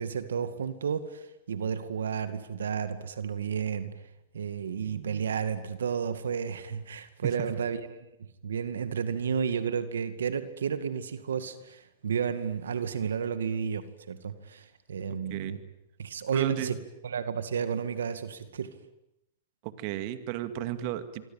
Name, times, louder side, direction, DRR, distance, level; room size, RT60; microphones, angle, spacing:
voice 1, 0.0-3.9 4.3-8.0 8.4-15.6 16.0-16.8 17.0-18.7, right 7 dB, 90° right, 11 dB, 2.2 m, -32 dB
voice 2, 16.3-16.7 19.6-21.3, right 13 dB, 50° right, 10 dB, 2.3 m, -34 dB
26.0 x 24.0 x 9.1 m, 0.84 s
hypercardioid pair, 130°, 0 cm